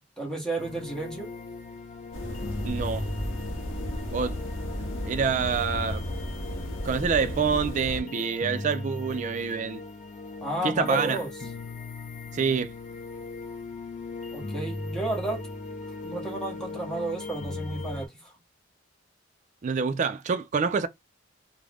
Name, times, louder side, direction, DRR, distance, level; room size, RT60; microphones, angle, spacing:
voice 1, 0.2-1.3 10.4-11.3 14.3-15.5 16.0-18.3, right 2 dB, 5° left, 0.9 m, -32 dB
sound 1, 0.6-18.1, left 2 dB, 40° left, 0.4 m, -38 dB
sound 2, 2.1-8.0, equal, 90° left, 0.7 m, -34 dB
voice 2, 2.6-3.0 4.1-4.4 5.0-6.0 6.8-9.8 10.6-11.2 12.3-12.7 19.6-20.9, right 5 dB, 40° right, 0.3 m, -26 dB
2.4 x 2.0 x 3.2 m
head